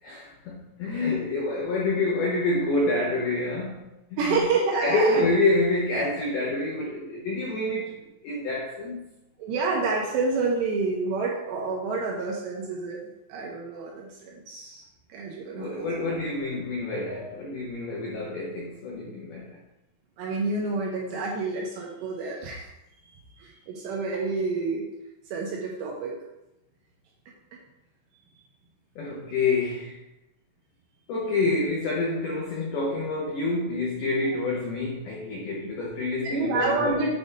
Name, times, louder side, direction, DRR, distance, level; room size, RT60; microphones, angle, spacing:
voice 1, 0.0-3.9 4.2-4.4 4.8-8.0 8.2-9.1 15.5-19.6 29.0-30.0 31.1-37.1, left 2 dB, 85° left, -3 dB, 2.1 m, -27 dB
voice 2, 4.2-5.3 9.4-13.0 13.3-14.8 15.1-15.9 20.2-22.7 23.4-24.8 25.3-26.1 36.2-37.2, right 3 dB, 75° right, -2 dB, 2.7 m, -28 dB
8.2 x 3.4 x 5.3 m, 0.92 s
omnidirectional pair, 5.9 m